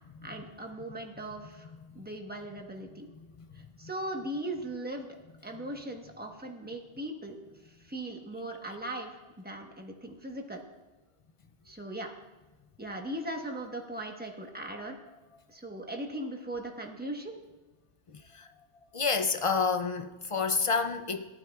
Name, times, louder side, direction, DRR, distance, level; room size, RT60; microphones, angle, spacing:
voice 1, 0.2-3.1 3.8-5.1 5.4-7.4 7.8-10.6 11.6-12.1 12.8-15.0 15.5-17.3, right 1 dB, 10° right, 1.1 m, -39 dB
voice 2, 18.9-21.3, left 5 dB, 45° left, 0.4 m, -28 dB
18.0 x 12.0 x 2.3 m
omnidirectional pair, 1.2 m